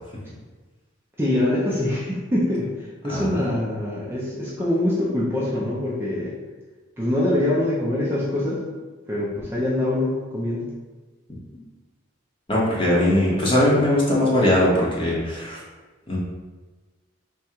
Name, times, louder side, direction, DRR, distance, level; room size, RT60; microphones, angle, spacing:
voice 1, 1.2-6.3 7.0-8.6 9.1-10.7, left 1 dB, 10° right, -7 dB, 0.5 m, -24 dB
voice 2, 3.1-3.5 12.5-15.6 16.1-16.2, left 1 dB, 25° left, -5 dB, 0.9 m, -20 dB
3.6 x 2.2 x 4.4 m, 1.3 s
head